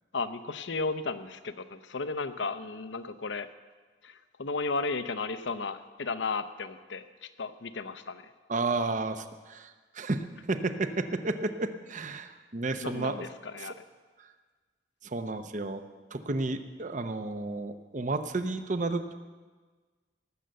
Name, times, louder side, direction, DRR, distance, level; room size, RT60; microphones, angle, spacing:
voice 1, 0.1-3.5 4.0-8.3 12.8-13.7, left 3 dB, 80° left, 11 dB, 0.8 m, -34 dB
voice 2, 8.5-13.2 13.6-13.7 14.2-14.3 15.0-15.8 16.1-19.1, right 3 dB, 45° right, 9 dB, 0.8 m, -32 dB
18.0 x 6.8 x 7.7 m, 1.4 s
head